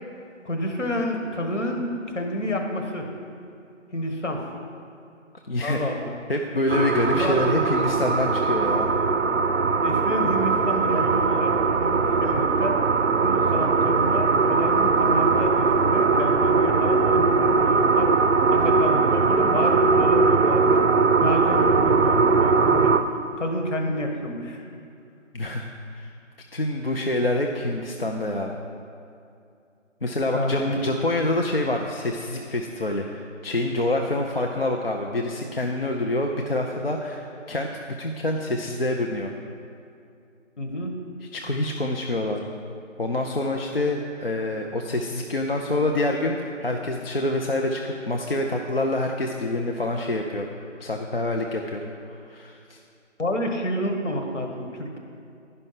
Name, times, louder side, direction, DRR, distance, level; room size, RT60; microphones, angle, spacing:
voice 1, 0.4-3.1 3.9-4.4 5.6-6.1 7.1-7.3 9.8-11.5 11.8-12.8 13.2-18.1 18.5-20.8 21.2-22.9 23.4-24.7 30.3-30.7 40.6-41.0 53.2-55.0, left 1 dB, 70° left, 3 dB, 1.5 m, -29 dB
voice 2, 5.5-5.8 6.3-8.9 25.3-26.1 26.5-28.6 30.0-39.3 41.3-42.4 43.0-50.5 50.8-51.8 52.1-52.8, left 1 dB, 50° left, 1 dB, 0.5 m, -26 dB
sound 1, 6.7-23.0, right 4 dB, 60° right, 0.5 m, -20 dB
10.5 x 5.5 x 5.6 m, 2.5 s
figure-of-eight pair, 175°, 38 cm